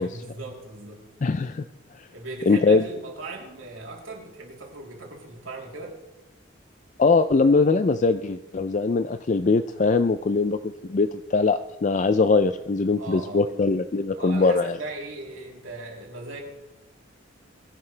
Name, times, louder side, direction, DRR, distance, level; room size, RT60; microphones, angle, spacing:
voice 1, 0.0-1.1 2.1-6.0 13.0-13.5 14.1-16.4, right 2 dB, 80° right, -1 dB, 3.4 m, -38 dB
voice 2, 1.2-1.6 2.5-2.8 7.0-14.8, left 4 dB, 40° left, 10 dB, 0.4 m, -21 dB
22.5 x 11.0 x 3.3 m, 0.97 s
head